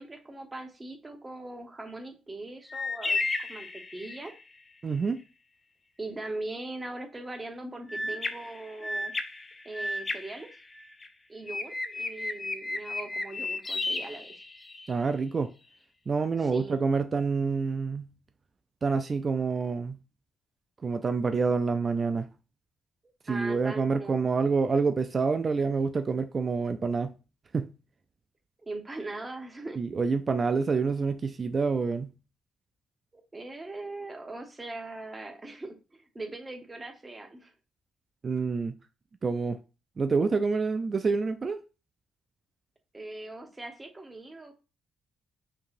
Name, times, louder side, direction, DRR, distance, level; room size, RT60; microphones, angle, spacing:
voice 1, 0.0-4.3 6.0-9.1 9.6-10.5 11.3-14.4 16.4-16.8 23.3-24.4 28.6-29.8 33.1-37.5 42.9-44.5, right 2 dB, 20° right, 0.9 m, -40 dB
sound 1, 2.7-4.4 7.9-11.1 11.5-14.9, left 2 dB, 25° left, 0.5 m, -34 dB
voice 2, 4.8-5.2 14.9-15.5 16.1-18.1 18.8-20.0 20.8-22.3 23.3-27.1 27.5-27.7 29.8-32.1 38.2-38.8 39.2-39.6 40.0-41.6, right 4 dB, 35° right, 0.3 m, -27 dB
5.2 x 2.9 x 2.5 m
cardioid pair, 90°, 0 cm